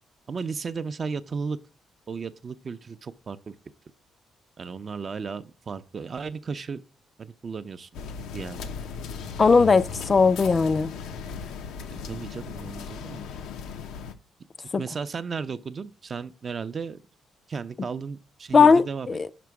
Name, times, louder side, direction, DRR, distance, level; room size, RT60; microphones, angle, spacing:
voice 1, 0.3-1.6 2.1-3.5 4.6-6.8 7.2-7.9 8.3-8.7 12.0-13.3 14.8-17.0 17.5-19.2, right 5 dB, 40° right, 0.5 m, -34 dB
sound 1, 7.9-14.1, left 5 dB, 90° left, 0.6 m, -37 dB
voice 2, 9.4-10.9 18.5-19.3, left 5 dB, 35° left, 0.3 m, -18 dB
5.9 x 5.1 x 4.7 m
cardioid pair, 90°, 0 cm